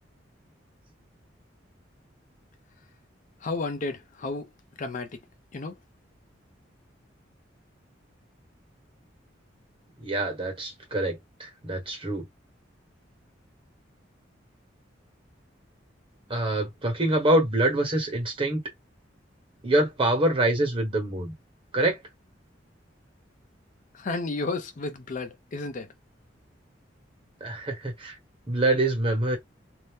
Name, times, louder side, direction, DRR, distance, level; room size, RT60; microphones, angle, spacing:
voice 1, 3.4-4.5 4.8-5.2 5.5-5.8 23.9-25.9, left 3 dB, 45° left, 0.5 m, -32 dB
voice 2, 10.0-12.3 16.3-18.6 19.6-21.3 21.7-22.0 27.4-28.1 28.5-29.4, right 1 dB, 30° right, 1.3 m, -25 dB
2.7 x 2.1 x 3.4 m
head